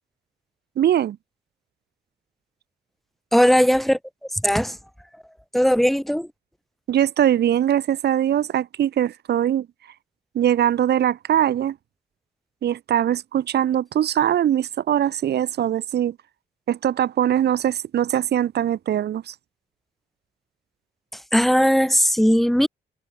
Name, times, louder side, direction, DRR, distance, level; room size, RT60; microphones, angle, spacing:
voice 1, 0.8-1.2 6.9-9.7 10.3-11.8 12.6-16.2 16.7-19.3, right 11 dB, 75° right, 3.7 m, -21 dB
voice 2, 3.3-4.0 4.4-4.8 5.5-6.3 21.3-22.7, equal, ahead, 3.3 m, -18 dB
wide cardioid pair, 175°, 17 cm